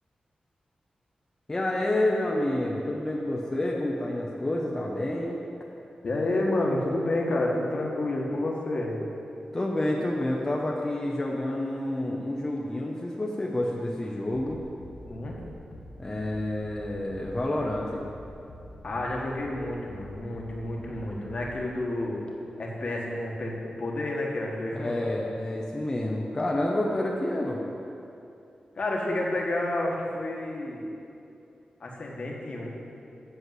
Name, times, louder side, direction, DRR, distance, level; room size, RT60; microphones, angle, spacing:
voice 1, 1.5-5.4 9.5-14.6 16.0-18.0 24.7-27.6, left 1 dB, 20° left, -3 dB, 0.7 m, -29 dB
voice 2, 6.0-9.0 15.0-15.4 18.8-22.2 22.6-24.9 28.8-30.8 31.8-32.7, left 1 dB, 50° left, -1 dB, 1.4 m, -30 dB
sound 1, 14.3-21.7, left 1 dB, 75° left, 1.0 m, -46 dB
8.1 x 6.5 x 7.7 m, 2.7 s
wide cardioid pair, 180°, 3 cm